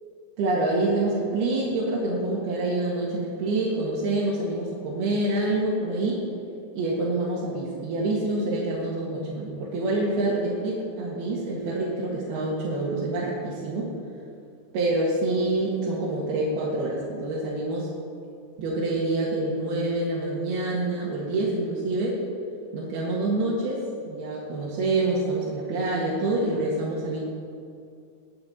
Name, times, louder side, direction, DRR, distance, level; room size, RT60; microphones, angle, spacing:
voice 1, 0.4-6.2 6.7-13.9 14.7-17.9 18.6-22.2 22.7-27.2, right 2 dB, 80° right, -6 dB, 3.7 m, -26 dB
20.5 x 9.4 x 4.4 m, 2.4 s
omnidirectional pair, 4.5 m